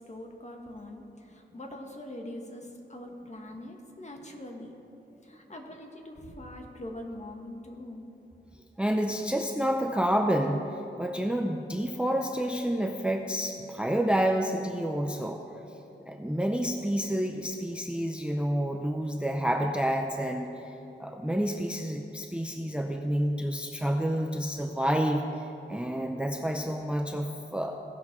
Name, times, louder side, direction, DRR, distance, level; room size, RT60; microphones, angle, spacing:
voice 1, 0.1-4.8 5.2-8.1, left 1 dB, 35° left, 2 dB, 1.3 m, -43 dB
voice 2, 8.8-10.6 11.0-15.4 16.1-20.7 21.0-27.8, equal, 5° right, 4 dB, 0.5 m, -29 dB
17.0 x 6.1 x 3.6 m, 3.0 s
wide cardioid pair, 90°, 20 cm